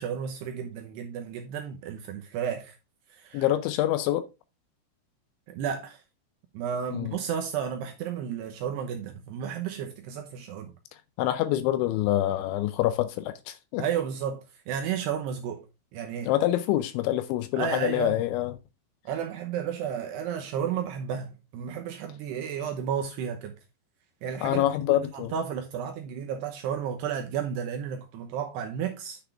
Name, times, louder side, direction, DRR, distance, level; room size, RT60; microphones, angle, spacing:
voice 1, 0.0-2.8 3.1-3.5 5.5-6.0 6.5-10.7 13.8-15.6 15.9-16.3 17.6-18.2 19.1-23.5 24.2-24.6 24.9-29.2, right 8 dB, 80° right, 2.6 m, -32 dB
voice 2, 3.3-4.3 6.9-7.2 11.2-13.8 16.3-18.5 24.4-25.3, left 13 dB, 80° left, 2.8 m, -26 dB
10.0 x 6.0 x 3.4 m
omnidirectional pair, 5.7 m